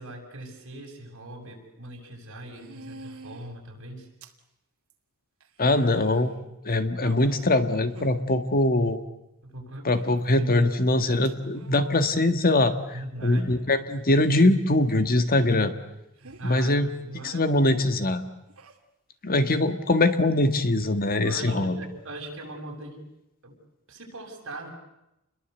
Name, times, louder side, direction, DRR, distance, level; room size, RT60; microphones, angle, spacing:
voice 1, 0.0-4.1 7.0-7.3 9.4-10.0 10.3-10.7 12.9-13.7 16.2-17.8 21.2-23.0 23.4-23.6 23.9-24.7, right 1 dB, 60° right, 1 dB, 7.5 m, -40 dB
sound 1, 1.4-1.5 2.6-3.5 4.2-4.4 4.9-5.0 5.4-6.4 7.3-7.4 7.9-8.2 9.9-10.2 11.2-12.0 14.1-14.6 16.2-16.4 18.5-18.8, right 2 dB, 80° right, 2.6 m, -46 dB
voice 2, 5.6-6.3 6.6-9.0 9.8-15.7 16.4-16.9 17.2-18.2 19.2-21.8, left 2 dB, 45° left, 9 dB, 1.7 m, -22 dB
29.5 x 22.0 x 8.1 m, 0.89 s
head